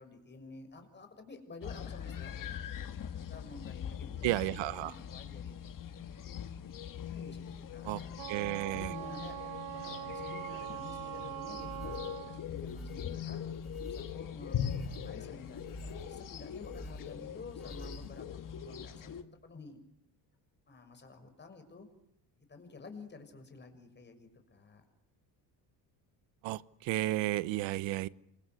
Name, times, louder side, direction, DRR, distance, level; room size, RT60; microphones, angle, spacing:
voice 1, 0.0-2.6 3.0-5.7 7.0-8.1 8.4-9.4 9.6-13.4 13.8-18.2 18.5-19.2 19.4-19.8 20.7-21.9 22.4-24.8, left 3 dB, 25° left, 6 dB, 6.3 m, -51 dB
sound 1, 1.6-19.2, left 9 dB, 45° left, 2.1 m, -41 dB
voice 2, 4.2-4.9 7.8-8.0 8.3-8.9 26.4-28.1, right 17 dB, 85° right, 17 dB, 1.2 m, -33 dB
Wind instrument woodwind instrument, 8.1-12.5, right 13 dB, 55° right, 1.2 m, -42 dB
sound 2, 11.4-18.6, right 1 dB, ahead, 4.7 m, -49 dB
28.0 x 25.5 x 8.0 m, 0.75 s
cardioid pair, 145°, 44 cm